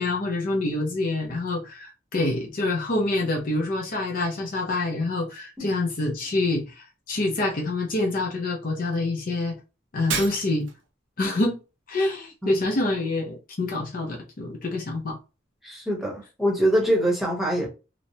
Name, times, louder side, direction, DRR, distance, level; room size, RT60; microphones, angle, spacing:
voice 1, 0.0-9.6 9.9-10.7 11.2-11.6 11.9-15.2, left 2 dB, 45° left, 0.5 m, -26 dB
Shatter, 10.1-10.9, right 5 dB, 75° right, 0.7 m, -31 dB
voice 2, 15.6-17.7, equal, ahead, 0.9 m, -24 dB
3.0 x 2.0 x 2.7 m
head